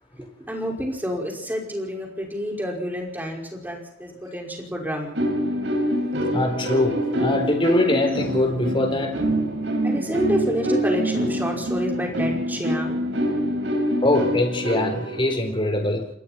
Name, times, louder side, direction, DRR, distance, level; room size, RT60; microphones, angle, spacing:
voice 1, 0.1-5.2 6.1-6.3 9.2-9.5 9.8-13.0, equal, 10° right, 0 dB, 5.5 m, -29 dB
sound 1, 5.1-15.4, equal, 65° right, 5.3 m, -25 dB
voice 2, 6.3-9.2 14.0-16.1, left 1 dB, 25° left, 5 dB, 3.9 m, -23 dB
28.5 x 20.5 x 4.5 m, 0.66 s
head